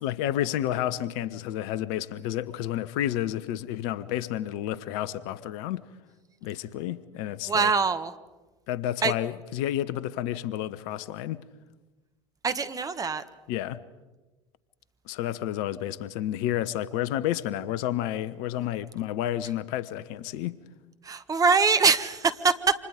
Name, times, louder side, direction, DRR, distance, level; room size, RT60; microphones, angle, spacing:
voice 1, 0.0-5.8 6.4-7.7 8.7-11.4 13.5-13.8 15.1-20.6, left 12 dB, 55° left, 1.0 m, -30 dB
voice 2, 7.5-8.1 9.0-9.1 12.4-13.2 21.0-22.7, right 5 dB, 25° right, 1.6 m, -23 dB
29.5 x 26.5 x 5.1 m
figure-of-eight pair, 70°, 15 cm